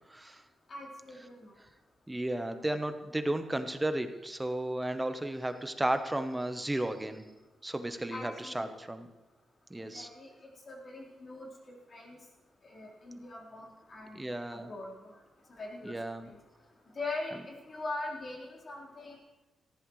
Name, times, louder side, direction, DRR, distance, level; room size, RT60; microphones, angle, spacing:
voice 1, 0.1-0.4 2.1-7.2 7.6-9.1 9.7-10.1 14.1-14.7 15.8-16.3, right 1 dB, 10° right, 8 dB, 1.0 m, -34 dB
voice 2, 0.7-1.5 8.1-8.7 9.9-10.3 10.7-11.5 11.9-12.2 12.6-14.9 15.5-15.9 17.0-19.2, left 2 dB, 40° left, -3 dB, 4.0 m, -41 dB
19.0 x 15.0 x 3.2 m, 1.1 s
cardioid pair, 120°, 0 cm